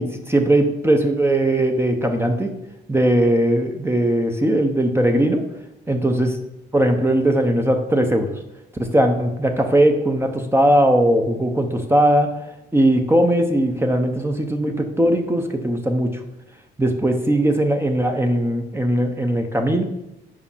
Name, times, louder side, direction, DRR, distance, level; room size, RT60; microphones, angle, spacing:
voice 1, 0.0-2.5 2.9-5.4 5.9-6.3 6.7-8.3 8.8-12.3 12.7-16.2 16.8-19.8, right 1 dB, 10° right, 4 dB, 0.8 m, -19 dB
5.3 x 4.9 x 5.5 m, 0.90 s
cardioid pair, 90°, 20 cm